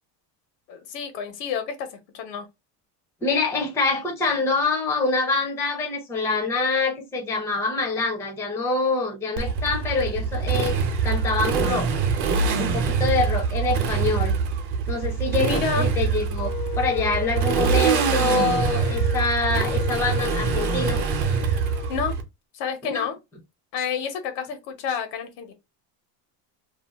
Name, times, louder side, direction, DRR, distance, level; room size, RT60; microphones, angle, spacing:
voice 1, 0.7-1.9 2.1-2.5 15.4-15.9 21.9-22.2 22.5-23.2 23.7-25.5, left 6 dB, 90° left, 1.0 m, -29 dB
voice 2, 3.2-10.8 11.0-11.9 12.6-14.4 14.9-21.1 22.8-23.1, left 3 dB, 5° left, 0.4 m, -25 dB
Motorcycle, 9.4-22.2, right 5 dB, 55° right, 0.8 m, -24 dB
Wind instrument woodwind instrument, 16.4-22.0, left 10 dB, 65° left, 0.6 m, -34 dB
2.6 x 2.2 x 3.3 m
cardioid pair, 155°, 48 cm